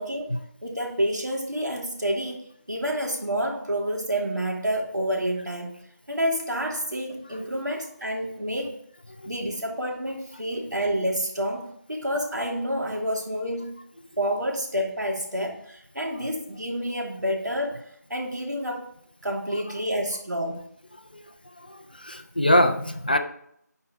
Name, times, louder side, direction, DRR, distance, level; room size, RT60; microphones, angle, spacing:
voice 1, 0.0-5.8 6.1-8.8 9.3-13.8 14.2-17.8 18.1-18.9 19.2-20.6, equal, 75° right, -1 dB, 2.9 m, -29 dB
voice 2, 21.6-23.2, left 1 dB, 30° left, 7 dB, 0.5 m, -23 dB
11.0 x 4.7 x 4.1 m, 0.71 s
figure-of-eight pair, 170°, 10 cm